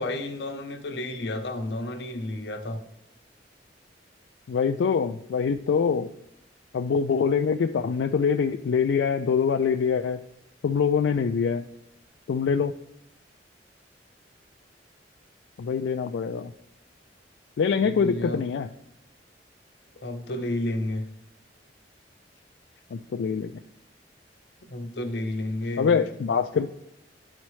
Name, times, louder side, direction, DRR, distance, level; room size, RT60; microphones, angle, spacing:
voice 1, 0.0-2.8 17.8-18.4 20.0-21.0 24.6-26.0, left 1 dB, 65° left, 0.9 m, -31 dB
voice 2, 4.5-6.1 6.7-10.2 10.6-11.6 12.3-12.7 15.6-16.5 17.6-18.7 22.9-23.5 25.8-26.7, left 6 dB, 85° left, 0.3 m, -24 dB
11.0 x 4.2 x 3.1 m
head